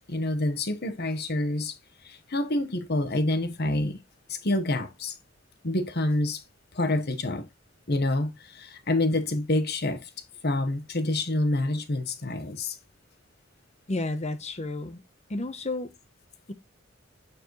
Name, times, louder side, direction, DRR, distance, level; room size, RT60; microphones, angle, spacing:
voice 1, 0.1-1.8 2.0-4.0 4.3-5.1 5.6-6.4 6.7-7.5 7.9-10.1 10.4-12.8, left 1 dB, 55° left, 1.3 m, -27 dB
voice 2, 13.9-15.0 15.3-15.9, left 2 dB, 35° left, 1.0 m, -31 dB
8.9 x 4.7 x 3.2 m
head